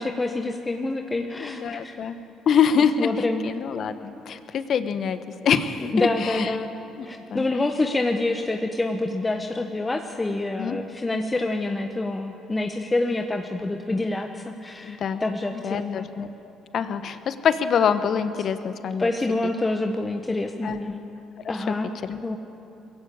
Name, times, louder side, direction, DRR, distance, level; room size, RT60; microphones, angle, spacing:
voice 1, 0.0-2.0 3.0-3.5 5.9-6.8 7.0-16.1 19.0-20.9 21.5-21.9 22.2-22.4, left 2 dB, 20° left, 5 dB, 1.3 m, -27 dB
voice 2, 1.4-2.1 2.5-6.5 7.0-7.1 7.3-7.5 10.6-10.8 14.8-15.2 15.6-16.3 16.7-19.1 20.6-20.8 21.4-21.7 22.1-22.2, left 7 dB, 55° left, 11 dB, 1.2 m, -25 dB
22.0 x 15.5 x 8.7 m, 2.8 s
hypercardioid pair, 50°, 0 cm